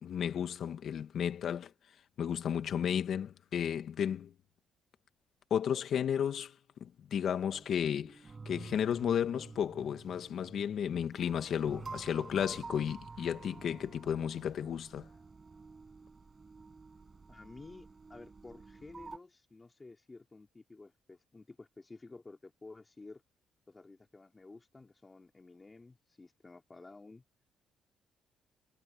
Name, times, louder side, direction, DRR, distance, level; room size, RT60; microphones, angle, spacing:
voice 1, 0.0-1.7 2.2-4.3 5.5-6.5 6.8-8.2 8.4-15.1, left 8 dB, 65° left, 1.6 m, -33 dB
sound 1, 7.5-19.2, right 4 dB, 30° right, 6.8 m, -50 dB
voice 2, 17.3-23.2 23.7-27.2, left 3 dB, 25° left, 3.9 m, -52 dB
cardioid pair, 90°, 0 cm